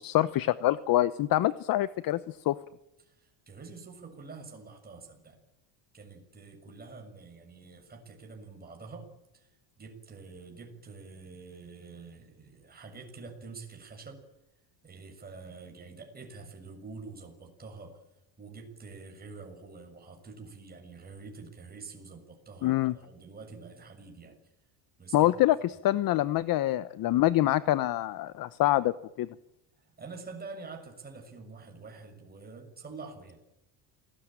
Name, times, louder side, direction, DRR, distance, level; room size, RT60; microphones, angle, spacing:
voice 1, 0.0-2.6 22.6-22.9 25.1-29.3, left 15 dB, 50° left, 15 dB, 1.0 m, -26 dB
voice 2, 3.0-5.4 5.9-9.1 9.3-9.5 9.8-14.2 14.8-18.0 18.4-24.4 25.0-25.3 29.8-33.4, right 4 dB, 20° right, 2 dB, 6.9 m, -47 dB
28.0 x 19.0 x 9.0 m, 0.90 s
cardioid pair, 150°, 45 cm